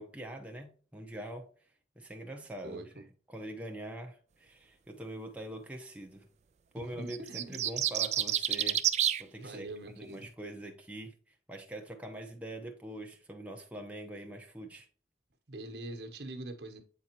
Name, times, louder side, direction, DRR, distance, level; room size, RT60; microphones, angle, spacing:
voice 1, 0.0-1.5 2.0-2.9 3.3-6.3 6.7-8.8 9.2-9.7 10.0-14.9, right 1 dB, 10° right, 0.7 m, -43 dB
voice 2, 6.7-7.7 9.4-10.3 15.5-16.8, right 2 dB, 70° right, 1.1 m, -43 dB
sound 1, 7.1-9.2, right 11 dB, 40° right, 0.3 m, -29 dB
8.4 x 4.1 x 2.9 m
head